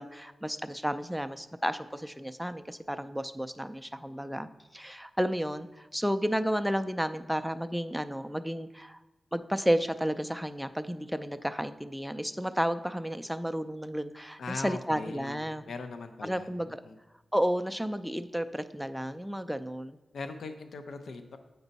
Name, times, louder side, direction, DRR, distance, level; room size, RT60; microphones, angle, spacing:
voice 1, 0.0-9.0 9.3-15.7 16.2-16.8 17.3-20.0, equal, ahead, 9 dB, 0.3 m, -32 dB
voice 2, 14.4-16.5 16.8-16.9 20.1-21.4, left 3 dB, 90° left, 7 dB, 0.5 m, -40 dB
7.9 x 5.3 x 4.0 m, 1.1 s
wide cardioid pair, 135°, 0 cm